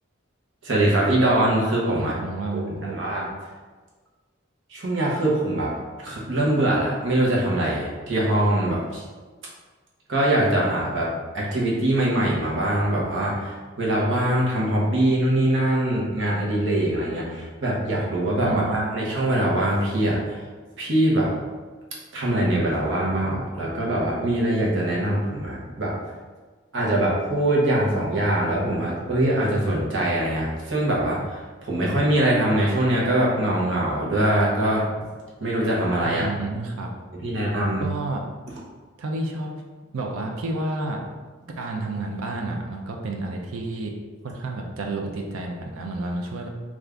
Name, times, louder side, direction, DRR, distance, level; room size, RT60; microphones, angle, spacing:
voice 1, 0.6-2.1 2.5-3.3 4.7-5.7 6.0-9.0 10.1-20.4 20.8-21.3 22.1-25.9 26.7-34.9 35.4-36.3 37.1-37.8, right 1 dB, 60° right, -4 dB, 0.9 m, -23 dB
voice 2, 1.9-3.0 18.4-19.1 36.0-36.9 37.8-38.2 39.0-39.5 39.9-41.0 41.6-43.9 44.2-46.5, right 2 dB, 85° right, 1 dB, 0.5 m, -30 dB
3.7 x 2.4 x 3.3 m, 1.4 s
head